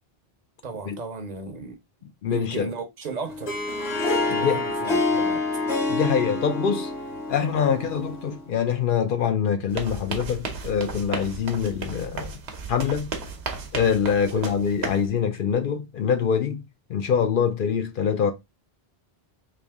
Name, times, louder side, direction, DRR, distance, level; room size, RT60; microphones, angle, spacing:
voice 1, 0.6-1.8 2.2-3.6 4.2-5.4 14.3-14.5, right 4 dB, 45° right, 0.8 m, -35 dB
voice 2, 2.2-2.7 4.3-4.6 5.9-6.9 7.3-12.3 12.7-13.1 13.7-16.6 16.9-18.3, left 7 dB, 65° left, 0.7 m, -24 dB
Harp, 3.2-8.5, left 2 dB, 40° left, 1.0 m, -27 dB
sound 1, 9.7-15.1, right 4 dB, 85° right, 1.0 m, -34 dB
3.4 x 2.6 x 3.4 m
omnidirectional pair, 1.0 m